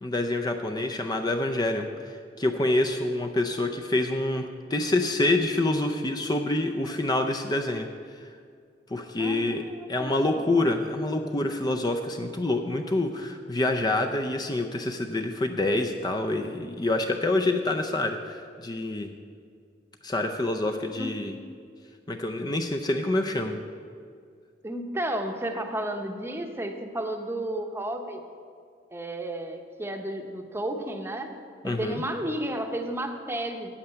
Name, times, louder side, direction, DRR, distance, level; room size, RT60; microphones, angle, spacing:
voice 1, 0.0-4.4 4.7-7.9 8.9-9.6 9.9-19.1 20.0-21.3 22.1-23.6 31.6-32.0, left 2 dB, 25° left, 4 dB, 0.5 m, -27 dB
voice 2, 9.2-10.5 20.9-21.1 24.6-28.2 28.9-31.3 31.6-33.7, right 1 dB, 15° right, 5 dB, 0.8 m, -32 dB
8.7 x 8.0 x 7.8 m, 2.2 s
head